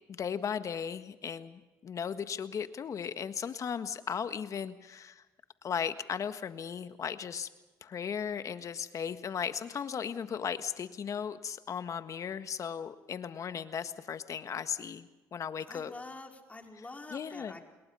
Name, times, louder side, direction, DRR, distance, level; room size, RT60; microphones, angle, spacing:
voice 1, 0.2-5.2 5.6-7.5 7.8-15.9 17.1-17.5, left 7 dB, 50° left, 11 dB, 1.6 m, -36 dB
voice 2, 15.7-17.6, left 2 dB, 20° left, 3 dB, 4.5 m, -46 dB
28.5 x 21.5 x 5.6 m, 1.1 s
supercardioid pair, 70°, 7 cm